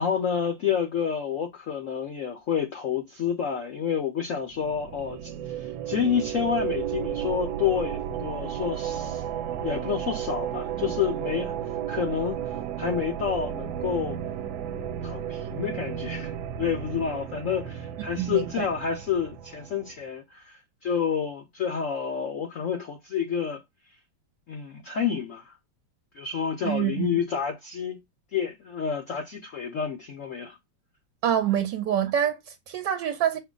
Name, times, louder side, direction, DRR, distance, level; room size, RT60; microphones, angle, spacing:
voice 1, 0.0-9.2 9.6-11.5 11.9-14.2 14.7-16.3 16.6-23.6 24.5-25.6 26.1-28.0 28.3-30.6, left 7 dB, 65° left, 0.8 m, -29 dB
sound 1, 4.5-19.9, right 10 dB, 90° right, 1.3 m, -33 dB
voice 2, 18.2-18.7 26.6-27.2 31.2-33.4, right 10 dB, 75° right, 1.2 m, -26 dB
4.8 x 2.2 x 3.7 m
omnidirectional pair, 2.1 m